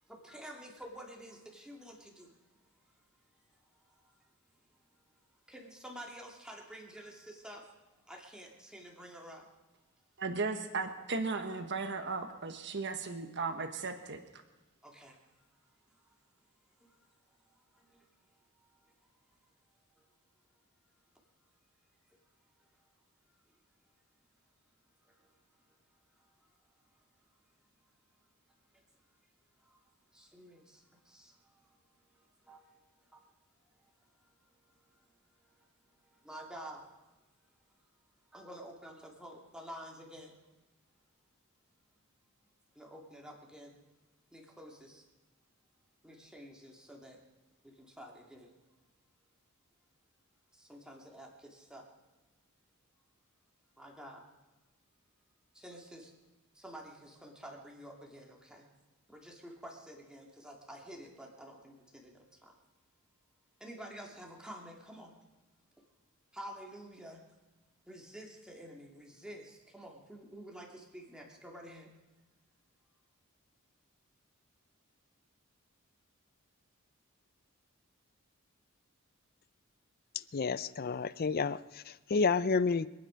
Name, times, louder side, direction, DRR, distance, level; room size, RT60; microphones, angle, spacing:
voice 1, 0.1-2.3 5.5-7.6 8.1-9.5 14.8-15.2 16.8-16.9 17.5-18.0 25.0-25.3 29.6-29.8 30.1-31.8 32.4-32.7 33.1-33.2 36.2-36.9 38.3-40.3 42.8-43.7 44.3-45.0 46.0-47.2 47.6-48.5 50.5-51.8 53.8-54.2 55.5-56.1 56.5-58.7 59.1-62.5 63.6-65.1 66.3-67.2 67.9-71.9, equal, 5° right, -1 dB, 2.4 m, -50 dB
voice 2, 10.2-14.2, right 4 dB, 55° right, 6 dB, 1.3 m, -36 dB
voice 3, 80.3-82.9, left 4 dB, 45° left, 17 dB, 0.5 m, -30 dB
25.5 x 9.5 x 5.2 m, 1.1 s
head